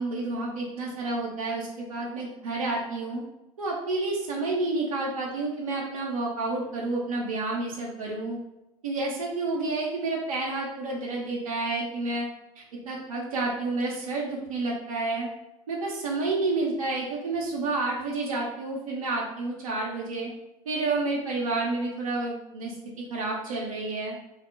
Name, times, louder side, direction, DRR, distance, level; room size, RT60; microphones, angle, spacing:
voice 1, 0.0-3.2 3.6-8.4 8.8-12.3 12.6-15.3 15.7-20.3 20.7-22.8 23.1-24.1, right 3 dB, 80° right, -3 dB, 0.6 m, -30 dB
2.2 x 2.1 x 3.6 m, 0.93 s
figure-of-eight pair, 70°, 18 cm